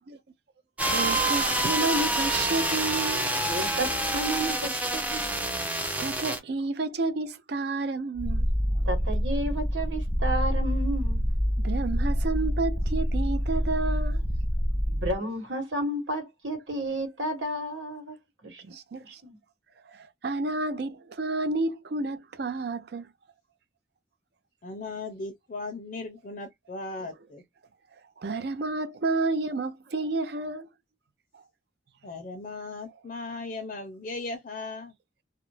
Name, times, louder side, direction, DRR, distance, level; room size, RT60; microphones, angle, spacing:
sound 1, 0.8-6.4, right 1 dB, 10° right, 0.5 m, -27 dB
voice 1, 0.9-3.3 6.0-8.5 11.6-14.2 18.6-19.2 19.9-23.1 28.2-30.7 31.3-31.4, right 3 dB, 60° right, 0.5 m, -30 dB
voice 2, 3.5-5.2 8.8-11.2 14.8-18.2 18.4-18.6 19.1-19.4, right 1 dB, 85° right, 1.3 m, -32 dB
Purr, 8.2-15.2, equal, 35° right, 0.8 m, -26 dB
voice 3, 24.6-27.4 32.0-34.9, left 3 dB, 45° left, 0.5 m, -37 dB
2.4 x 2.0 x 3.0 m
head